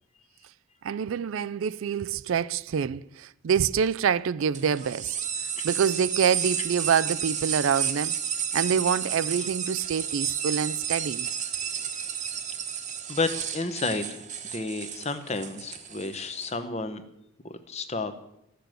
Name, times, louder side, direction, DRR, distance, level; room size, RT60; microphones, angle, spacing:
voice 1, 0.8-5.2 5.6-8.2 8.5-11.3, right 7 dB, 65° right, 0.3 m, -26 dB
sound 1, 4.5-16.5, right 8 dB, 35° right, 1.0 m, -32 dB
voice 2, 13.1-14.2 14.5-17.0 17.4-18.1, left 3 dB, 30° left, 0.8 m, -31 dB
13.5 x 6.9 x 7.7 m
head